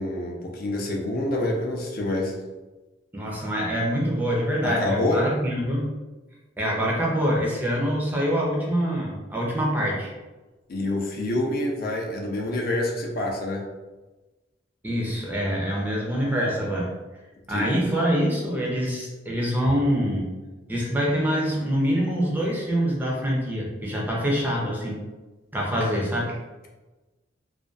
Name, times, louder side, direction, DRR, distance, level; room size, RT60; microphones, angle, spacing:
voice 1, 0.0-2.3 4.6-5.2 10.7-13.7 17.5-17.6, left 1 dB, 50° left, 0 dB, 0.4 m, -27 dB
voice 2, 3.1-5.9 6.6-10.2 14.8-16.9 17.5-20.3 20.7-25.0 25.5-26.4, equal, 10° right, -3 dB, 0.5 m, -25 dB
2.5 x 2.2 x 2.3 m, 1.2 s
head